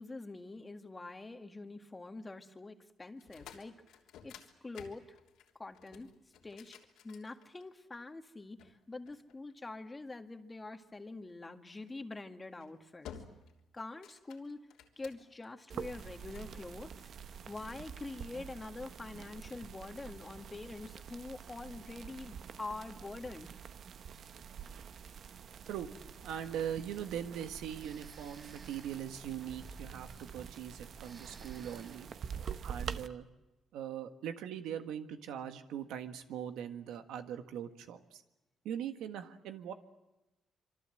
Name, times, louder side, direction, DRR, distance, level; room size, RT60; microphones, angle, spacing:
voice 1, 0.0-3.7 4.2-4.3 4.6-5.2 5.6-6.1 6.4-6.8 7.0-13.2 13.7-14.6 15.0-17.1 17.5-23.6, left 3 dB, 20° left, 6 dB, 1.9 m, -45 dB
sound 1, 3.1-7.9 8.6-9.9 11.7-11.9 12.4-12.7 13.0-13.6 13.9-15.5 16.0-16.6, left 8 dB, 90° left, 3.2 m, -54 dB
sound 2, 15.7-33.1, right 7 dB, 60° right, 1.0 m, -47 dB
Breathing, 26.2-27.2 27.8-30.7 30.9-32.1, right 3 dB, 30° right, 5.9 m, -57 dB
voice 2, 26.2-32.1 32.6-33.3 33.7-38.2 38.6-39.7, right 9 dB, 90° right, 8 dB, 1.6 m, -41 dB
26.0 x 24.5 x 7.8 m, 1.0 s
cardioid pair, 90°, 0 cm